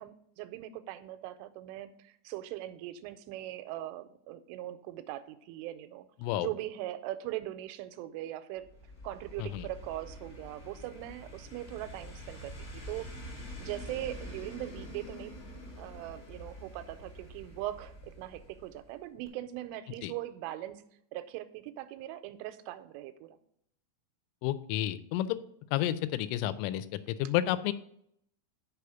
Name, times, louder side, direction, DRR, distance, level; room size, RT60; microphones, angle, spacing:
voice 1, 0.0-6.1 6.4-8.7 9.0-13.1 13.6-15.4 15.8-20.8 21.1-23.4, right 14 dB, 90° right, 11 dB, 3.1 m, -40 dB
sound 1, 8.6-19.0 19.3-19.4, equal, 50° left, 1.0 m, -46 dB
voice 2, 24.4-25.4 25.7-27.7, left 13 dB, 85° left, 13 dB, 3.0 m, -31 dB
6.7 x 4.9 x 6.8 m, 0.71 s
omnidirectional pair, 5.6 m